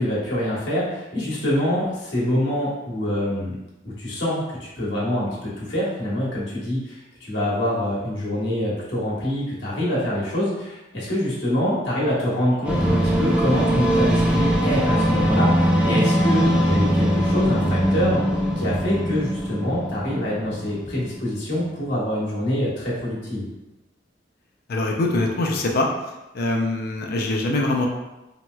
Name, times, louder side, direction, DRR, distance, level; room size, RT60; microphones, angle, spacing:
voice 1, 0.0-3.6 3.8-18.2 18.6-23.5, left 1 dB, 80° left, -7 dB, 1.1 m, -25 dB
sound 1, 12.6-21.2, equal, 5° right, 0.5 m, -21 dB
voice 2, 24.7-25.9 26.3-27.9, left 2 dB, 55° left, 1 dB, 0.5 m, -23 dB
3.0 x 2.8 x 2.2 m, 1.0 s
head